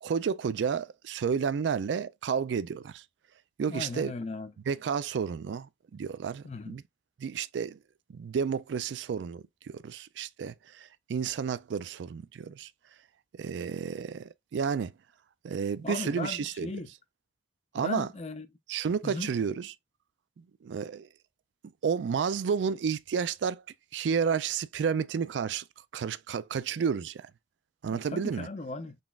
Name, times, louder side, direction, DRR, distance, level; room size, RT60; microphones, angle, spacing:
voice 1, 0.0-3.0 3.6-4.1 4.7-6.8 7.2-7.8 8.1-12.7 13.4-14.9 15.4-16.7 17.7-18.1 18.7-19.7 20.6-21.1 21.8-23.6 23.9-25.6 25.9-27.2 27.8-28.5, right 6 dB, 80° right, 0.3 m, -31 dB
voice 2, 3.7-4.5 6.4-6.8 15.8-16.9 17.8-18.5 19.0-19.3 27.9-29.0, left 3 dB, 35° left, 0.5 m, -37 dB
4.0 x 3.5 x 2.4 m
head